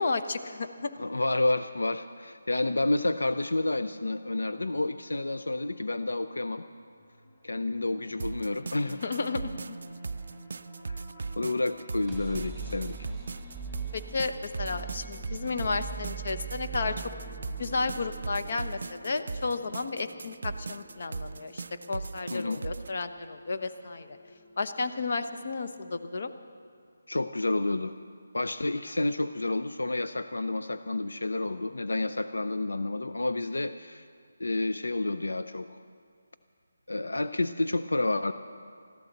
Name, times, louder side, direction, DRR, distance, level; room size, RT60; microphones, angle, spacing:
voice 1, 0.0-0.9 8.8-9.8 13.9-17.0 17.6-24.2 24.6-26.3, left 3 dB, 55° left, 9 dB, 0.9 m, -33 dB
voice 2, 1.0-6.6 7.4-9.1 10.9-11.1 11.4-13.0 22.3-22.6 27.1-27.9 28.3-34.1 34.4-35.8 36.9-38.3, left 2 dB, 85° left, 10 dB, 0.5 m, -30 dB
sound 1, 2.4-17.7, right 1 dB, 35° left, 4.5 m, -53 dB
sound 2, 8.2-22.9, right 4 dB, 60° right, 0.3 m, -39 dB
sound 3, 11.8-25.6, right 5 dB, ahead, 1.9 m, -43 dB
21.0 x 14.5 x 4.0 m, 2.2 s
figure-of-eight pair, 160°, 0 cm